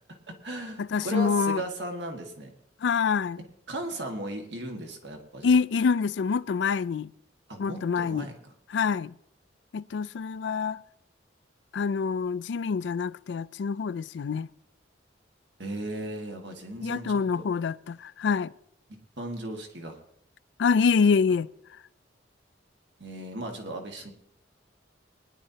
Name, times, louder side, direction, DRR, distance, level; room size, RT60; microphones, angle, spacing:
voice 1, 0.1-2.5 3.7-5.5 7.5-8.3 15.6-17.5 19.2-20.0 23.0-24.1, right 1 dB, 65° right, 1.8 m, -36 dB
voice 2, 0.8-1.6 2.8-3.4 5.4-7.1 7.6-8.3 8.7-9.1 9.7-10.8 11.7-14.5 16.8-18.5 20.6-21.5, left 5 dB, 70° left, 0.4 m, -26 dB
21.0 x 11.0 x 2.8 m
head